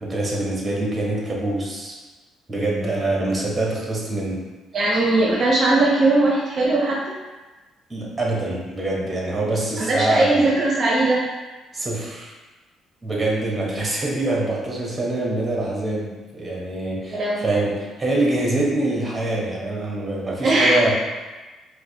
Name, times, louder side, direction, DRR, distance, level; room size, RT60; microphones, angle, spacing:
voice 1, 0.0-1.9 2.5-4.4 7.9-10.5 11.7-12.3 13.0-20.9, right 2 dB, 20° right, -3 dB, 0.9 m, -25 dB
voice 2, 4.7-7.0 9.8-11.2 17.1-17.5 20.4-20.9, right 2 dB, 50° right, -4 dB, 0.6 m, -19 dB
4.6 x 2.1 x 2.7 m, 1.2 s
cardioid pair, 90°, 0 cm